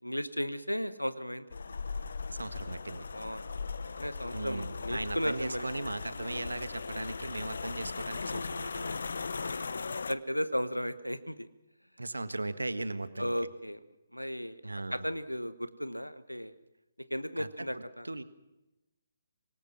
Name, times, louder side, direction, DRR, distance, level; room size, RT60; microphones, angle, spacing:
voice 1, 0.0-1.5 3.1-5.7 9.4-9.7 10.1-11.5 13.2-13.8 14.1-14.6 14.9-16.5 17.1-18.1, equal, 90° left, 13 dB, 1.3 m, -35 dB
sound 1, 1.5-10.1, left 4 dB, 60° left, 0.8 m, -38 dB
voice 2, 2.3-3.1 4.3-8.9 12.0-13.3 14.6-15.1 17.4-18.2, right 2 dB, 75° right, 12 dB, 1.5 m, -38 dB
25.5 x 20.0 x 6.0 m, 0.96 s
figure-of-eight pair, 135°, 0 cm